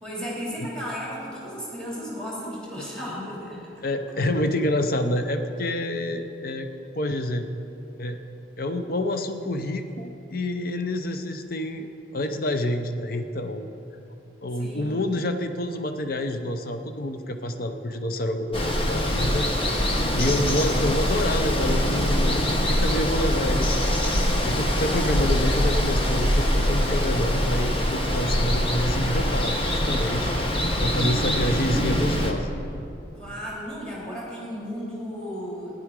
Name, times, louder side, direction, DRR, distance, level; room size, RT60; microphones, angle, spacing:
voice 1, 0.0-3.7 14.5-15.0 30.9-31.6 33.1-35.8, equal, 5° left, -6 dB, 3.1 m, -35 dB
voice 2, 3.8-6.7 6.9-7.5 8.0-8.2 8.6-13.7 14.4-19.5 19.7-23.8 24.4-30.3 30.8-32.5, left 1 dB, 50° left, 7 dB, 0.7 m, -28 dB
Water, 18.5-32.3, equal, 30° left, 1.1 m, -23 dB
16.0 x 10.5 x 4.8 m, 2.7 s
head